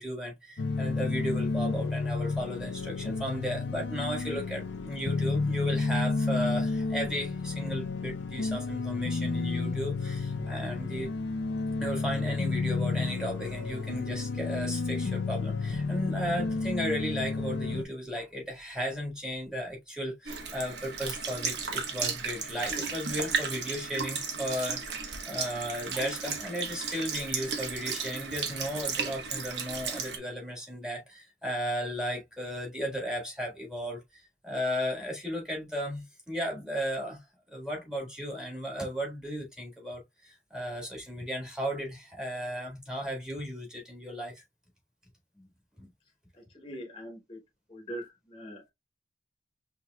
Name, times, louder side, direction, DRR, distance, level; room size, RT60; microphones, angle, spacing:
voice 1, 0.0-11.1 11.8-37.2 37.5-44.4 45.4-45.5 45.8-45.9, equal, 5° right, 1.6 m, -35 dB
sound 1, 0.6-17.8, left 3 dB, 85° left, 0.6 m, -31 dB
Sink (filling or washing) / Liquid, 20.3-30.2, right 5 dB, 75° right, 1.1 m, -34 dB
voice 2, 46.3-47.4 47.7-48.7, equal, 25° left, 1.1 m, -42 dB
5.7 x 2.9 x 2.2 m
head